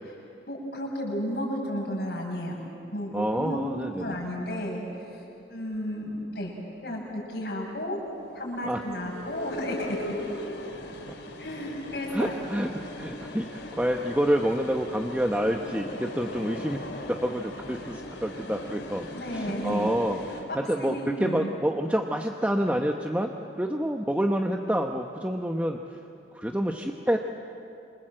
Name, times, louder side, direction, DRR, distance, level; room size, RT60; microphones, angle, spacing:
voice 1, 0.5-2.6 2.9-3.6 3.9-5.2 5.5-6.5 6.8-8.0 8.3-10.1 11.4-12.3 19.1-19.9 20.5-21.5, equal, 65° left, -2 dB, 7.3 m, -33 dB
voice 2, 3.1-4.3 8.6-8.8 12.1-16.8 17.1-25.8 26.3-27.2, equal, 10° right, 3 dB, 0.9 m, -28 dB
sound 1, 6.3-20.4, left 1 dB, 90° left, 3.7 m, -40 dB
28.0 x 27.0 x 7.8 m, 2.6 s
head